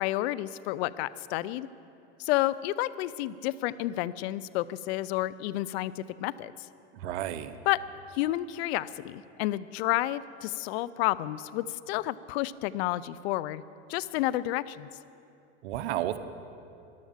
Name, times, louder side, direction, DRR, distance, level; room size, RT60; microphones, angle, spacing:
voice 1, 0.0-1.7 2.2-6.5 7.6-7.8 8.1-13.6 13.9-14.9, left 16 dB, 65° left, 18 dB, 0.6 m, -30 dB
voice 2, 7.0-7.6 15.6-16.2, right 12 dB, 75° right, 12 dB, 0.9 m, -32 dB
14.0 x 11.5 x 7.3 m, 2.7 s
supercardioid pair, 115°, 34 cm